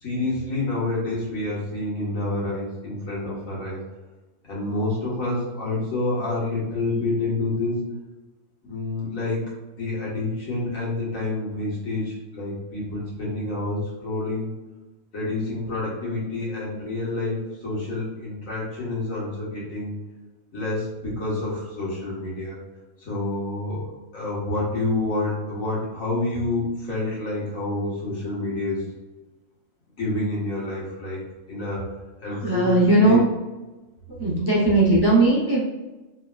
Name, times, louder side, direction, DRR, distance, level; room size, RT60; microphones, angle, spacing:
voice 1, 0.0-3.8 4.4-7.8 8.6-9.4 9.8-14.5 15.1-20.0 20.5-22.6 23.0-28.8 30.0-31.2 31.5-31.9 32.2-33.2, left 2 dB, 60° left, -6 dB, 1.8 m, -28 dB
voice 2, 32.3-33.2 34.2-35.6, right 2 dB, 30° right, -4 dB, 0.4 m, -18 dB
4.4 x 3.5 x 2.4 m, 1.1 s
omnidirectional pair, 1.6 m